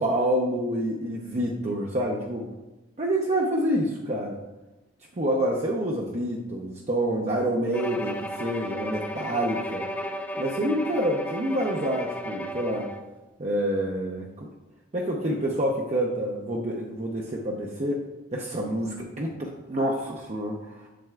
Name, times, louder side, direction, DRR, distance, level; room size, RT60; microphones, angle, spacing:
voice 1, 0.0-2.5 3.0-4.4 5.2-9.9 10.4-12.9 13.4-14.5 14.9-18.0 18.3-20.9, right 1 dB, 35° right, -2 dB, 0.6 m, -27 dB
Bowed string instrument, 7.7-13.1, equal, 10° left, 0.3 m, -34 dB
7.6 x 7.5 x 2.3 m, 1.0 s
head